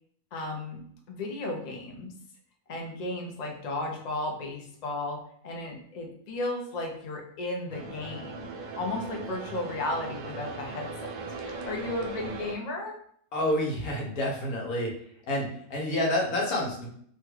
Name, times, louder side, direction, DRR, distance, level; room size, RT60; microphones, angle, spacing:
voice 1, 0.3-2.1 2.7-10.9 11.4-13.0, left 2 dB, 45° left, 1 dB, 0.5 m, -34 dB
sound 1, 7.7-12.6, right 3 dB, 75° right, 0.5 m, -39 dB
voice 2, 13.3-14.9 15.3-16.9, left 1 dB, 90° left, -2 dB, 1.4 m, -28 dB
3.1 x 2.3 x 3.1 m, 0.62 s
omnidirectional pair, 1.5 m